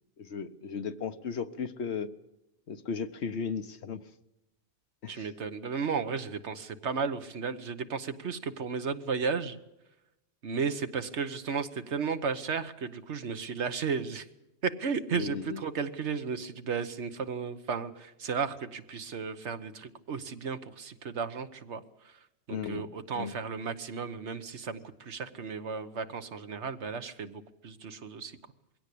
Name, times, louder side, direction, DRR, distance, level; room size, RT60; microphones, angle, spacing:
voice 1, 0.2-2.1 2.7-4.0 5.0-5.3 15.1-15.6 22.5-23.4, left 6 dB, 75° left, 10 dB, 1.3 m, -36 dB
voice 2, 5.1-9.6 10.4-14.3 14.6-21.8 22.5-28.3, right 5 dB, 80° right, 10 dB, 1.4 m, -34 dB
21.5 x 17.0 x 8.5 m, 0.93 s
omnidirectional pair, 1.1 m